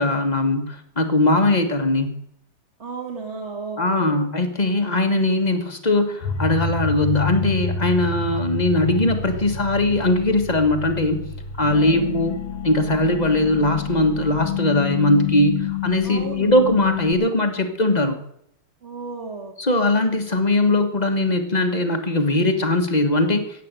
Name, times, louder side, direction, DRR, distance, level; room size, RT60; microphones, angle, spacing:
voice 1, 0.0-2.1 3.8-11.3 11.6-12.3 12.6-18.2 19.6-23.6, left 2 dB, 25° left, 7 dB, 1.3 m, -20 dB
voice 2, 2.8-4.2 11.7-12.1 16.0-16.6 18.8-19.6, right 4 dB, 35° right, 0 dB, 1.8 m, -33 dB
sound 1, 6.2-17.1, left 6 dB, 85° left, 2.0 m, -29 dB
16.5 x 8.4 x 8.2 m, 0.74 s
omnidirectional pair, 2.4 m